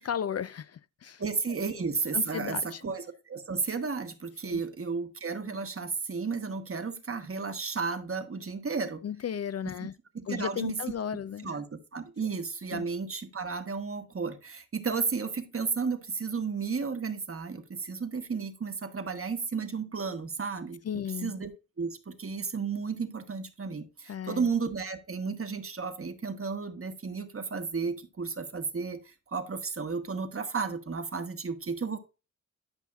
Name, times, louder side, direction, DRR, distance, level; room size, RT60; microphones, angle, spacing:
voice 1, 0.0-1.2 2.1-2.8 4.4-4.6 9.0-9.9 10.3-11.5 12.7-12.8 20.8-21.3 24.1-24.5, left 8 dB, 50° left, 0.4 m, -34 dB
voice 2, 1.2-9.0 10.1-10.8 11.4-21.5 21.8-32.0, right 5 dB, 45° right, 1.1 m, -33 dB
11.5 x 5.5 x 2.4 m
cardioid pair, 60°, 32 cm